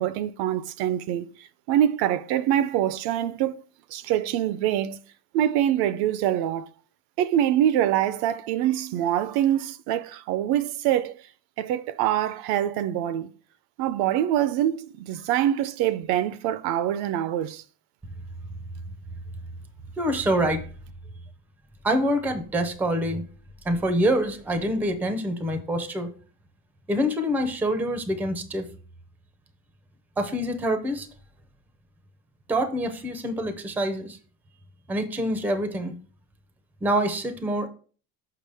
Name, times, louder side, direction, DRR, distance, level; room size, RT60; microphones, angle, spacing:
voice 1, 0.0-3.6 3.9-5.0 5.3-6.7 7.2-11.2 11.6-13.3 13.8-17.6, right 11 dB, 60° right, 0.5 m, -25 dB
voice 2, 20.0-20.7 21.8-23.2 23.6-26.1 26.9-28.7 30.2-31.1 32.5-34.2 34.9-35.9 36.8-37.7, equal, 5° right, 0.4 m, -25 dB
6.6 x 5.8 x 3.4 m
cardioid pair, 165°, 44 cm